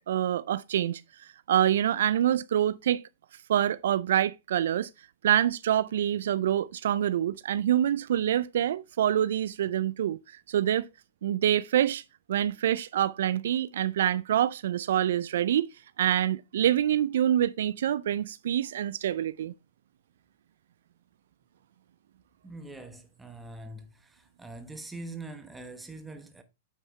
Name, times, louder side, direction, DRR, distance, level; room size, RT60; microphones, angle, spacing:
voice 1, 0.0-3.1 3.5-4.9 5.2-10.2 10.5-10.9 11.2-12.0 12.3-15.7 16.0-19.5, right 11 dB, 70° right, 0.3 m, -26 dB
voice 2, 22.4-26.4, right 2 dB, 10° right, 1.2 m, -43 dB
8.9 x 4.5 x 3.2 m
hypercardioid pair, 125°, 0 cm